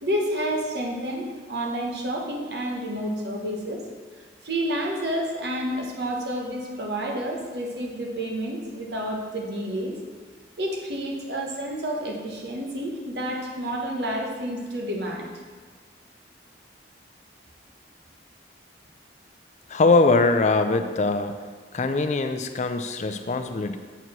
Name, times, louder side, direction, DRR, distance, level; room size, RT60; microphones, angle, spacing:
voice 1, 0.0-3.8 4.4-10.0 10.6-15.3, equal, 60° right, 0 dB, 1.2 m, -29 dB
voice 2, 19.7-21.4 21.7-23.8, left 3 dB, 40° left, 8 dB, 0.4 m, -22 dB
6.8 x 4.6 x 6.0 m, 1.5 s
head